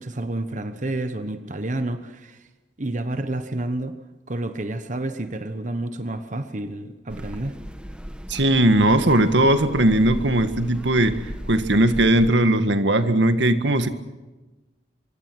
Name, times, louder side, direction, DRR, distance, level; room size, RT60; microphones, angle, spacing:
voice 1, 0.0-2.5 2.8-4.0 4.3-7.6, right 1 dB, 45° right, 1.1 m, -29 dB
sound 1, 7.1-12.3, equal, 5° right, 1.3 m, -36 dB
voice 2, 8.3-11.2 11.5-13.9, right 1 dB, 80° right, 1.8 m, -18 dB
25.5 x 23.5 x 6.2 m
head